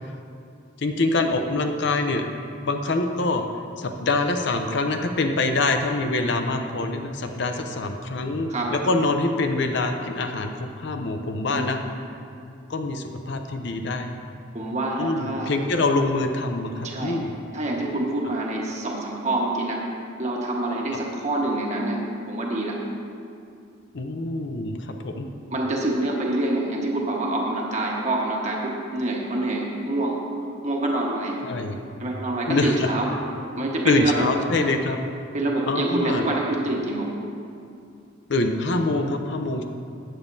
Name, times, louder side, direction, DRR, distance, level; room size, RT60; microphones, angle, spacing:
voice 1, 0.8-2.2 2.6-3.4 3.8-11.8 12.7-14.1 15.0-17.3 23.9-25.3 31.4-31.8 32.5-32.9 33.8-35.0 35.7-36.2 38.3-39.6, left 2 dB, 65° left, 5 dB, 0.6 m, -25 dB
voice 2, 14.5-15.5 16.8-17.2 17.5-19.8 20.2-22.0 22.3-22.8 25.5-30.2 30.6-31.4 32.0-33.1 33.6-34.3 34.5-34.7 35.3-37.1, right 2 dB, 35° right, -2 dB, 1.3 m, -26 dB
14.0 x 8.9 x 2.7 m, 2.5 s
head